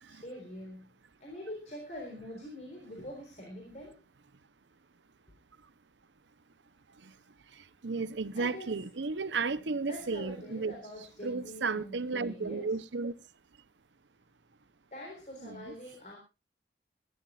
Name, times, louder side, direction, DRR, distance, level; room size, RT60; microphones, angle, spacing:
voice 1, 0.1-4.0 8.3-8.8 9.9-12.7 14.9-16.2, left 1 dB, 40° left, 3.9 m, -45 dB
voice 2, 7.5-10.8 11.2-13.1 15.4-15.7, right 4 dB, 85° right, 0.8 m, -34 dB
23.0 x 12.5 x 2.4 m
head